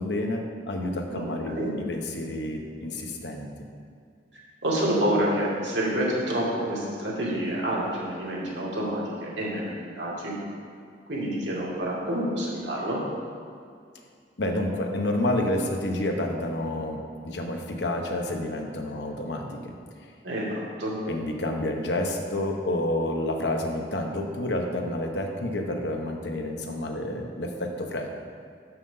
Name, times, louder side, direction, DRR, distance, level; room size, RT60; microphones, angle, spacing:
voice 1, 0.0-1.6 1.9-3.5 14.4-19.7 21.1-28.1, left 1 dB, 75° left, 2 dB, 0.9 m, -29 dB
voice 2, 1.1-1.7 4.3-10.4 11.1-13.0 20.2-21.0, right 1 dB, 90° right, -5 dB, 2.0 m, -28 dB
6.6 x 5.8 x 5.5 m, 2.3 s
head